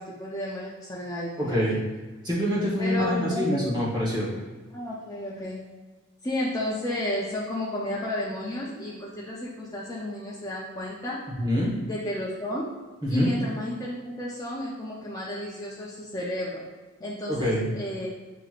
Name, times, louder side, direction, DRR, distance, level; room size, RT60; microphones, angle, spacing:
voice 1, 0.0-1.6 2.8-3.6 4.7-5.6 6.2-11.2 11.9-12.7 13.1-16.6 17.0-18.1, left 1 dB, 15° left, -6 dB, 0.5 m, -32 dB
voice 2, 1.4-1.8 2.2-4.4 11.4-11.7 13.0-13.3 17.3-17.6, equal, 20° right, -5 dB, 1.1 m, -25 dB
7.3 x 2.9 x 2.4 m, 1.3 s
head